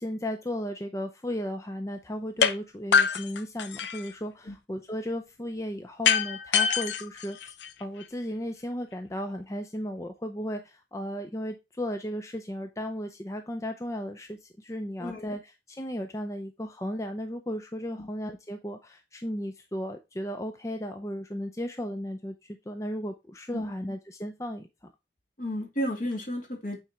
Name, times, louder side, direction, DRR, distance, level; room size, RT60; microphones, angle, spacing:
voice 1, 0.0-7.5 7.8-24.7, equal, 15° left, 6 dB, 0.5 m, -35 dB
sound 1, 2.4-2.5 2.9-4.1 6.0-8.0, left 6 dB, 80° left, 0.7 m, -25 dB
voice 2, 15.0-15.3 18.0-18.1 23.5-23.7 25.4-26.8, equal, 45° left, 1 dB, 2.6 m, -33 dB
8.7 x 4.3 x 3.5 m, 0.24 s
head